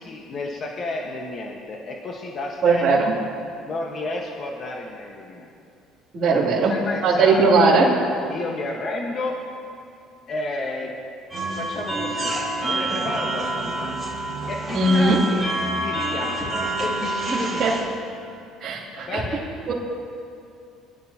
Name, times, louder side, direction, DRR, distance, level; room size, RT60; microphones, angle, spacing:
voice 1, 0.0-3.1 3.6-5.5 6.3-7.4 7.7-7.8 8.3-9.4 10.3-10.9 11.6-12.4 12.6-13.9 14.5-15.5 15.8-17.8 18.9-19.4, left 2 dB, 45° left, 0 dB, 1.4 m, -31 dB
voice 2, 2.6-3.1 6.1-6.7 7.0-7.9 14.7-15.2 17.6-17.7 18.6-19.2 19.7-19.8, right 3 dB, 45° right, -12 dB, 3.0 m, -18 dB
sound 1, 11.3-17.8, right 2 dB, 10° right, 3.6 m, -27 dB
22.0 x 11.5 x 2.9 m, 2.5 s
cardioid pair, 110°, 0 cm